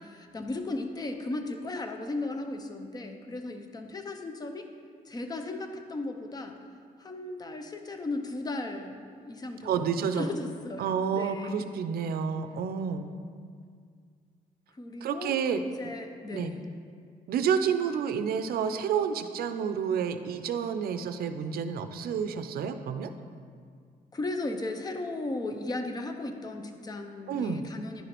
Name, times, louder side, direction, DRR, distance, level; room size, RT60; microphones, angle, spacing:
voice 1, 0.0-4.7 5.1-6.5 7.0-11.7 14.7-15.4 15.6-16.7 24.1-28.0, left 2 dB, 25° left, 6 dB, 0.5 m, -36 dB
voice 2, 9.6-10.3 10.8-13.1 15.0-15.6 16.3-16.5 17.3-23.1 27.3-27.6, right 7 dB, 75° right, 9 dB, 0.4 m, -29 dB
10.0 x 4.9 x 3.0 m, 2.1 s
cardioid pair, 130°, 16 cm